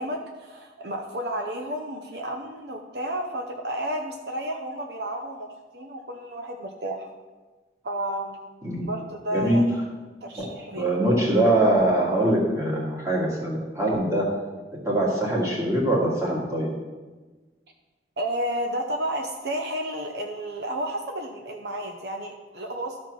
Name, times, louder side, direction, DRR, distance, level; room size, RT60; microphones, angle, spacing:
voice 1, 0.0-5.5 5.7-7.1 7.8-8.4 8.8-9.8 10.2-10.9 18.2-23.0, right 1 dB, 65° right, 3 dB, 0.8 m, -31 dB
voice 2, 9.3-9.6 10.4-10.5 10.7-14.2 14.8-16.7, right 1 dB, 15° right, -4 dB, 2.3 m, -23 dB
12.5 x 4.3 x 6.2 m, 1.3 s
head